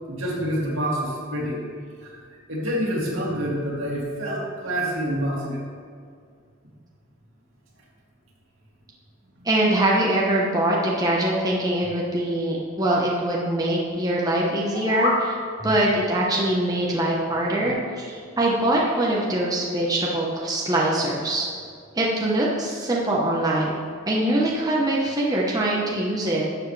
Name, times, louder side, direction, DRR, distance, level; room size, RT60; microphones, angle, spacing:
voice 1, 0.1-1.6 2.0-2.2 2.5-5.6 9.4-9.5 15.6-15.7 17.3-17.7, equal, 70° right, -5 dB, 2.6 m, -27 dB
voice 2, 9.4-15.4 15.6-21.5 21.9-23.7 24.1-26.4, right 1 dB, 20° right, -4 dB, 1.0 m, -23 dB
sound 1, 14.6-15.3, left 2 dB, 50° left, 1.5 m, -25 dB
12.0 x 7.3 x 3.3 m, 2.1 s
head